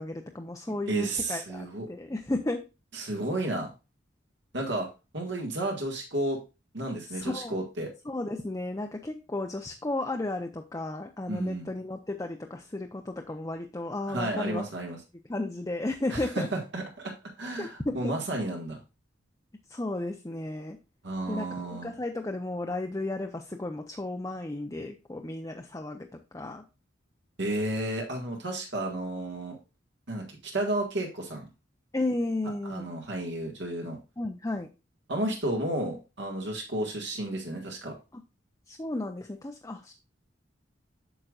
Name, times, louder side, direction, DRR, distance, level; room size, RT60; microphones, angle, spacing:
voice 1, 0.0-2.6 7.1-7.6 8.1-14.6 15.3-16.5 17.6-18.1 19.7-20.8 21.3-26.1 26.3-26.6 31.9-32.9 34.2-34.7 38.7-39.9, left 2 dB, 20° left, 4 dB, 0.5 m, -33 dB
voice 2, 0.7-1.9 2.9-3.7 4.5-4.9 5.1-6.4 6.7-7.9 11.3-11.7 14.1-15.0 16.1-18.8 21.0-21.9 27.4-29.6 30.1-31.5 32.6-34.0 35.1-37.9, right 1 dB, 70° right, 0 dB, 1.6 m, -32 dB
8.8 x 6.6 x 2.4 m, 0.28 s
head